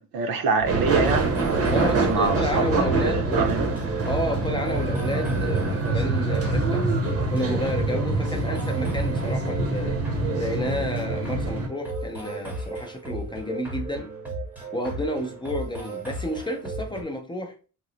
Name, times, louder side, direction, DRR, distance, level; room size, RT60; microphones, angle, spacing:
voice 1, 0.0-1.7 2.0-3.6, right 4 dB, 85° right, 0.7 m, -26 dB
sound 1, 0.6-17.0, right 2 dB, 5° right, 0.7 m, -35 dB
sound 2, 0.6-11.7, right 3 dB, 45° right, 0.6 m, -25 dB
voice 2, 1.7-3.5 4.1-6.9 7.3-10.0 10.3-14.1 14.7-17.6, equal, 15° left, 0.4 m, -30 dB
2.9 x 2.0 x 3.8 m
cardioid pair, 170°, 35 cm